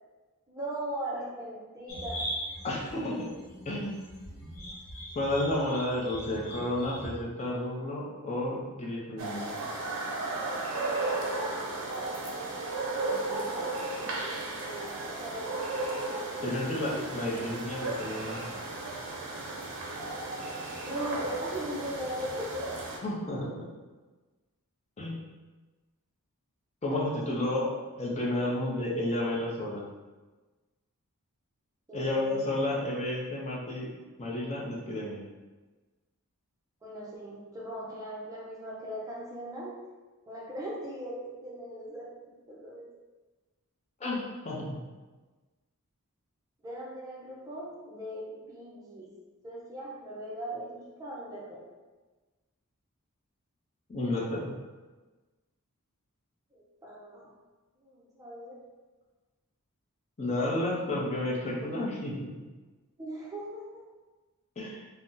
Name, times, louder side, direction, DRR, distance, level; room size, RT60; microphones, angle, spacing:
voice 1, 0.5-2.2 13.0-15.5 16.1-16.6 16.9-17.2 20.8-22.7 26.9-27.2 28.4-28.6 31.9-32.5 36.8-39.8 40.3-42.9 46.6-49.1 49.4-51.7 56.5-57.3 57.8-58.6 63.0-63.8, right 1 dB, 15° right, -5 dB, 0.5 m, -40 dB
sound 1, 1.9-7.1, equal, 70° left, 0.7 m, -40 dB
voice 2, 2.6-3.3 3.7-4.0 5.1-9.6 16.4-18.4 23.0-23.7 25.0-25.2 26.8-27.7 28.0-29.8 31.9-33.9 34.2-35.2 44.0-44.8 53.9-54.5 60.2-62.4 64.6-64.8, left 1 dB, 30° left, -4 dB, 0.6 m, -31 dB
sound 2, 9.2-23.0, right 2 dB, 60° right, 0.6 m, -34 dB
2.7 x 2.1 x 3.7 m, 1.3 s
head